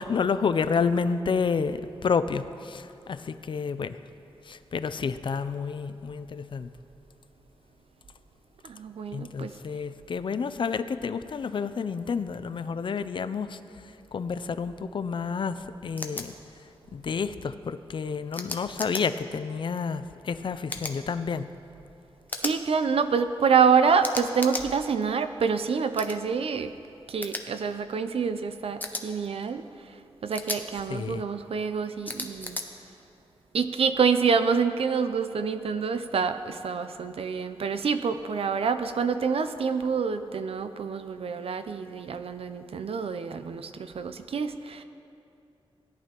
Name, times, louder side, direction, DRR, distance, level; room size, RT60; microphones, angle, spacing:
voice 1, 0.0-4.0 4.4-6.7 9.1-16.3 16.9-21.5 30.9-31.2, left 5 dB, 55° left, 12 dB, 0.4 m, -30 dB
voice 2, 8.6-9.5 22.4-26.7 27.1-29.6 30.2-32.6 33.5-44.8, right 6 dB, 70° right, 10 dB, 0.5 m, -27 dB
sound 1, 16.0-16.2 18.3-19.0 20.7-21.0 22.3-22.6 24.0-24.7 26.0-26.2 27.2-27.4 28.8-29.0 30.3-30.6 32.1-32.6, left 2 dB, 15° left, 0.7 m, -34 dB
17.0 x 11.0 x 3.0 m, 2.7 s
wide cardioid pair, 135°, 10 cm